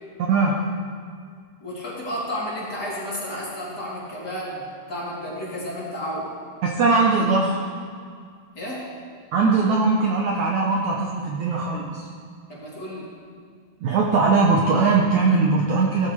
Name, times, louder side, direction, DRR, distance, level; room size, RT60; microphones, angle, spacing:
voice 1, 0.3-0.6 6.6-7.6 9.3-12.1 13.8-16.1, right 4 dB, 70° right, -1 dB, 1.9 m, -20 dB
voice 2, 1.6-6.3 8.6-8.9 12.5-13.1, equal, 25° left, -8 dB, 3.5 m, -32 dB
18.0 x 13.0 x 3.3 m, 2.1 s
omnidirectional pair, 4.4 m